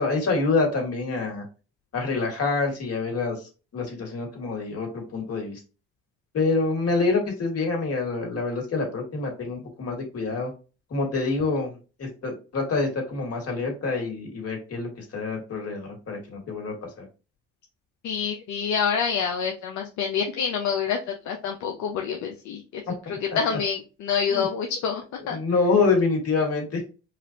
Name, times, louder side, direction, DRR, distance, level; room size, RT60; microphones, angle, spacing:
voice 1, 0.0-1.4 1.9-3.3 3.7-5.6 6.3-10.5 10.9-11.7 12.0-17.1 23.1-23.6 24.3-24.5 25.3-26.9, left 3 dB, 50° left, 1 dB, 2.2 m, -26 dB
voice 2, 18.0-22.8 23.1-25.4, left 6 dB, 70° left, 3 dB, 0.8 m, -27 dB
4.9 x 2.5 x 2.9 m, 0.32 s
supercardioid pair, 65°, 31 cm